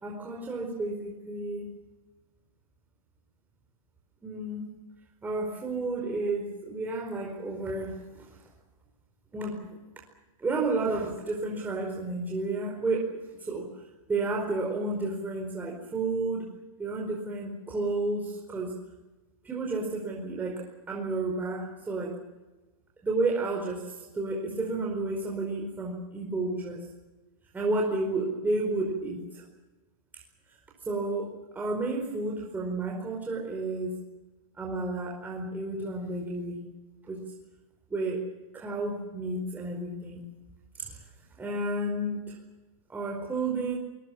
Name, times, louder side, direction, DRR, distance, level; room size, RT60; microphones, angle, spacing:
voice 1, 0.0-1.6 4.2-4.7 5.2-8.0 9.3-9.6 10.4-13.7 14.1-16.5 16.8-18.7 19.4-22.2 23.0-26.8 27.5-29.2 30.9-34.0 34.6-36.6 37.0-37.2 37.9-38.2 38.5-40.2 40.8-41.0 41.4-42.3 42.9-43.8, right 2 dB, 10° right, -1 dB, 4.6 m, -31 dB
24.5 x 21.0 x 7.4 m, 1.1 s
hypercardioid pair, 140°, 18 cm